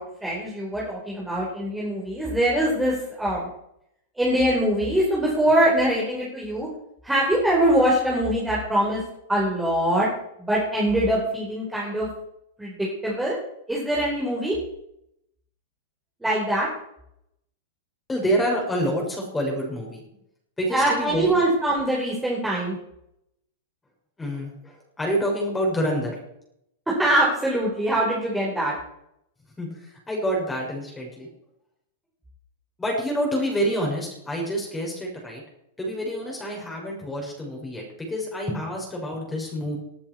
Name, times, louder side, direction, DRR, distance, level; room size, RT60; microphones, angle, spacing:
voice 1, 0.0-3.5 4.2-6.7 7.0-9.0 9.3-10.1 10.5-12.1 12.6-12.7 13.0-13.4 13.7-14.5 16.2-16.7 20.7-22.8 26.9-28.7, right 1 dB, 5° right, -5 dB, 5.1 m, -23 dB
voice 2, 18.1-20.0 20.6-21.4 24.2-26.2 29.6-31.3 32.8-35.4 35.8-39.8, equal, 10° left, -1 dB, 6.5 m, -27 dB
20.5 x 9.9 x 4.8 m, 0.76 s
figure-of-eight pair, 100°, 0 cm